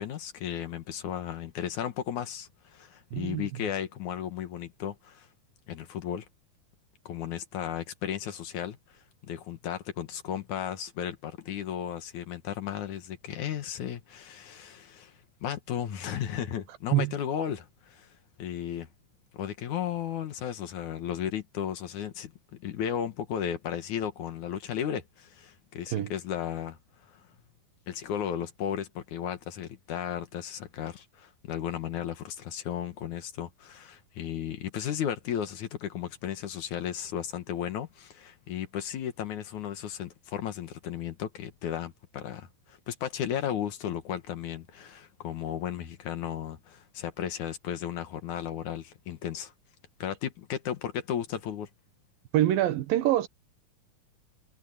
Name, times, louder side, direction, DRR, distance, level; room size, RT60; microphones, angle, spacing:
voice 1, 0.0-5.3 5.7-6.3 7.1-18.1 18.4-18.9 19.3-27.3 27.9-49.5 50.0-51.7, left 9 dB, 65° left, 2.6 m, -35 dB
voice 2, 3.1-3.5 16.9-17.1 25.9-26.1 52.3-53.3, right 14 dB, 80° right, 2.9 m, -25 dB
omnidirectional pair, 4.0 m